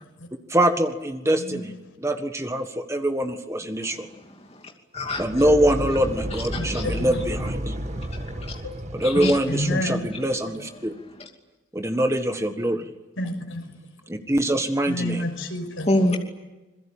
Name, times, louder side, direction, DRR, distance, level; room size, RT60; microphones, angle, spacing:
voice 1, 0.5-1.7 2.0-4.1 5.2-7.7 8.9-10.9 11.7-12.9 14.1-15.2, right 1 dB, 15° right, 6 dB, 1.5 m, -24 dB
voice 2, 1.3-1.7 6.6-7.2 8.6-8.7 9.5-10.1 13.2-13.8 14.9-15.9, left 1 dB, 70° left, 5 dB, 6.1 m, -29 dB
sound 1, 5.0-10.2, equal, 35° right, 1.9 m, -32 dB
voice 3, 6.5-6.9 7.8-8.5 9.0-9.3 11.2-11.3 15.9-16.2, left 1 dB, 30° left, 2 dB, 2.7 m, -26 dB
27.0 x 22.5 x 8.9 m, 1.1 s
head